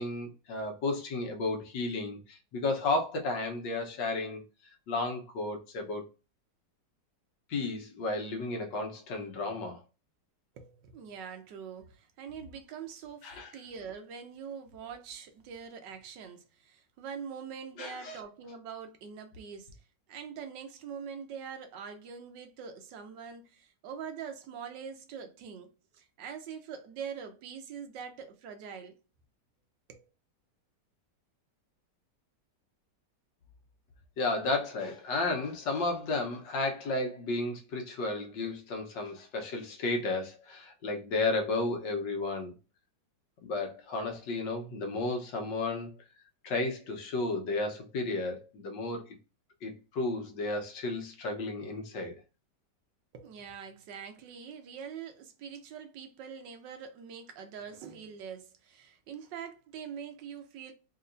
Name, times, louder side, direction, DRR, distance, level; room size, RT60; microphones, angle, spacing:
voice 1, 0.0-4.4 4.9-6.1 7.5-9.8 13.2-13.5 17.8-18.2 34.2-42.5 43.4-45.9 46.4-49.0 49.6-52.1, left 2 dB, 85° left, 1.7 m, -33 dB
voice 2, 10.5-19.8 20.1-29.0 29.9-30.0 53.1-60.7, right 7 dB, 80° right, 1.4 m, -44 dB
4.3 x 2.9 x 2.5 m
omnidirectional pair, 1.9 m